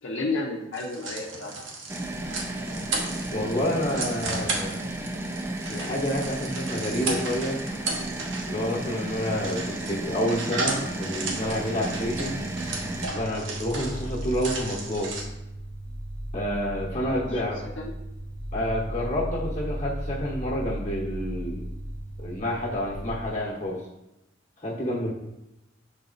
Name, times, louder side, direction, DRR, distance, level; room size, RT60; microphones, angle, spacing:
voice 1, 0.0-1.5 17.3-17.5 17.8-18.0, left 2 dB, 75° left, -3 dB, 0.7 m, -31 dB
sound 1, 0.7-15.2, right 3 dB, 75° right, 1.0 m, -35 dB
sound 2, 1.9-13.1, right 1 dB, 10° right, 0.4 m, -33 dB
voice 2, 3.3-4.7 5.7-7.6 8.5-12.4 13.1-15.2 16.3-17.6 18.5-21.6 22.2-23.8 24.6-25.1, equal, 35° left, -2 dB, 1.1 m, -29 dB
sound 3, 7.9-9.1 9.4-23.2, right 1 dB, 45° right, 1.2 m, -37 dB
6.5 x 4.1 x 4.0 m, 0.90 s
head